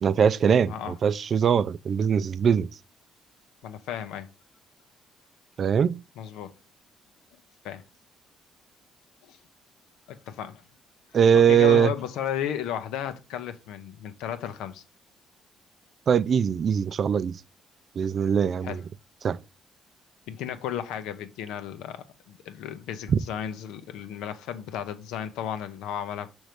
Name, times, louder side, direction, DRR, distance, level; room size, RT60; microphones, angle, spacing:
voice 1, 0.0-2.7 5.6-6.0 11.1-11.9 16.1-17.4 18.0-18.8 19.2-19.4 23.1-23.2, right 7 dB, 50° right, 0.3 m, -21 dB
voice 2, 0.6-1.0 3.6-4.3 6.2-6.5 7.6-7.8 9.2-9.4 10.1-10.6 11.3-14.8 18.6-18.8 20.3-26.3, left 10 dB, 90° left, 0.6 m, -34 dB
6.3 x 3.1 x 4.9 m
cardioid pair, 90°, 0 cm